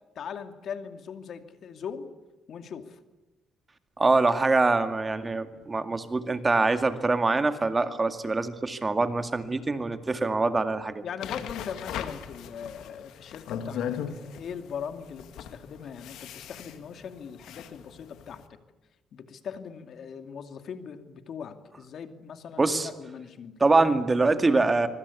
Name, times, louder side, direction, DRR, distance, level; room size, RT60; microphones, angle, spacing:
voice 1, 0.1-2.1 2.5-3.0 11.0-18.6 19.1-23.9, left 7 dB, 60° left, 8 dB, 2.6 m, -40 dB
voice 2, 4.0-11.0 22.6-22.9 23.6-24.9, right 3 dB, 25° right, 9 dB, 2.1 m, -24 dB
sound 1, 11.2-18.4, left 8 dB, 85° left, 2.3 m, -38 dB
25.0 x 24.0 x 8.5 m, 1.1 s
cardioid pair, 100°, 0 cm